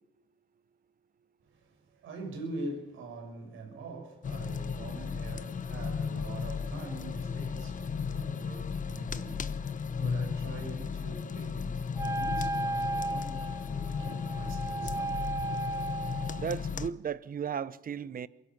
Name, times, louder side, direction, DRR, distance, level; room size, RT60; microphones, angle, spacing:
voice 1, 1.5-15.6, right 2 dB, 80° right, 6.6 m, -44 dB
sound 1, 4.2-16.9, left 6 dB, 40° left, 1.0 m, -35 dB
Wind instrument woodwind instrument, 12.0-16.5, right 2 dB, 15° right, 2.3 m, -35 dB
voice 2, 16.4-18.3, right 7 dB, 45° right, 0.9 m, -35 dB
23.0 x 16.0 x 7.5 m
cardioid pair, 90°, 20 cm